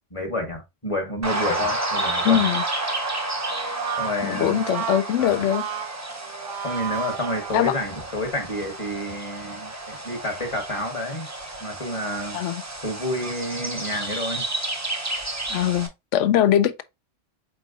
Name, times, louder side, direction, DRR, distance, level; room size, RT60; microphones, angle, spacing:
voice 1, 0.1-2.5 4.0-4.6 5.2-5.5 6.6-11.3 11.6-12.4 12.8-14.4, left 1 dB, 25° left, 1.2 m, -29 dB
sound 1, 1.2-15.9, right 2 dB, 20° right, 0.6 m, -31 dB
voice 2, 2.2-2.6 4.2-5.6 7.5-7.7 12.3-12.6 15.5-16.8, left 10 dB, 75° left, 0.9 m, -21 dB
Brass instrument, 3.5-8.0, right 9 dB, 80° right, 0.9 m, -33 dB
4.6 x 4.2 x 2.5 m
omnidirectional pair, 1.3 m